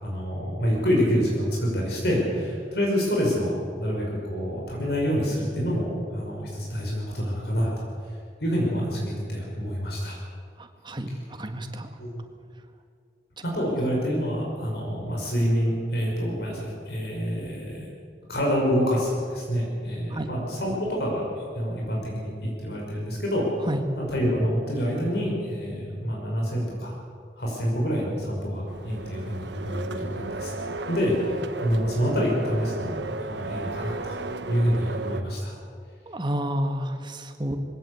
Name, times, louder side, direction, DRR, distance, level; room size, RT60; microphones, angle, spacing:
voice 1, 0.0-7.7 8.4-10.2 12.0-12.2 13.4-17.8 18.3-23.5 24.0-26.9 27.4-34.2 34.5-35.5, equal, 65° left, -2 dB, 5.7 m, -27 dB
voice 2, 10.6-11.1 11.4-11.9 20.1-20.3 23.7-23.8 36.1-37.6, equal, 25° right, 6 dB, 1.8 m, -30 dB
sound 1, 28.7-35.2, right 2 dB, 85° right, 1.3 m, -34 dB
22.0 x 17.0 x 8.4 m, 2.3 s
head